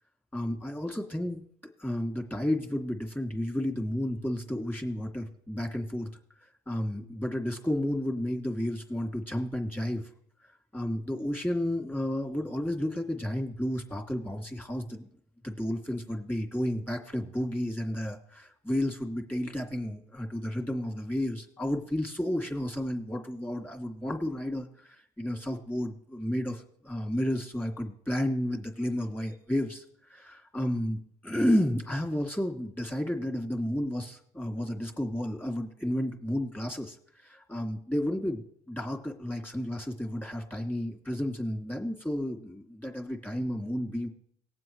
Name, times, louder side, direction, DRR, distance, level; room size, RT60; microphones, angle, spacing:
voice 1, 0.3-1.4 1.8-6.1 6.7-10.0 10.7-15.1 15.4-29.8 30.1-37.0 37.2-38.4 38.7-44.1, left 1 dB, 10° left, 3 dB, 2.5 m, -32 dB
19.5 x 7.7 x 3.2 m, 0.64 s
supercardioid pair, 90°, 15 cm